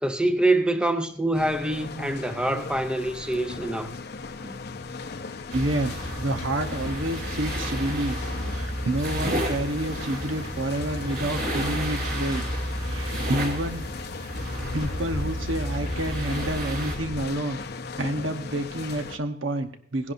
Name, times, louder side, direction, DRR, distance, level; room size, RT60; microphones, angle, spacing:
voice 1, 0.0-3.9 4.4-4.6, right 1 dB, 5° right, 0.5 m, -25 dB
sound 1, 1.3-19.2, left 4 dB, 55° left, 0.6 m, -37 dB
sound 2, 5.5-17.0, equal, 55° right, 3.0 m, -31 dB
voice 2, 5.5-8.2 8.5-12.4 12.8-13.9 14.7-17.6 18.0-20.1, right 1 dB, 80° right, 1.1 m, -29 dB
17.0 x 11.0 x 2.6 m
head